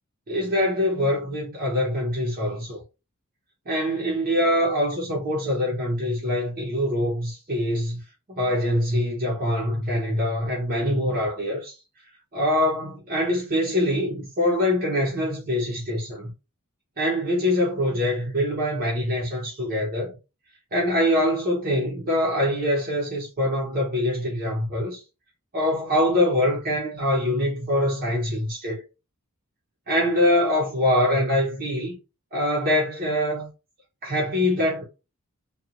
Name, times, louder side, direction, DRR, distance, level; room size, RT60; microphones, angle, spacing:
voice 1, 0.3-2.8 3.7-8.0 8.3-11.8 12.3-16.3 17.0-20.2 20.7-25.0 25.5-28.8 29.9-31.9 32.3-33.5 34.0-34.8, left 1 dB, 40° right, 0.9 m, -24 dB
2.8 x 2.4 x 2.5 m
head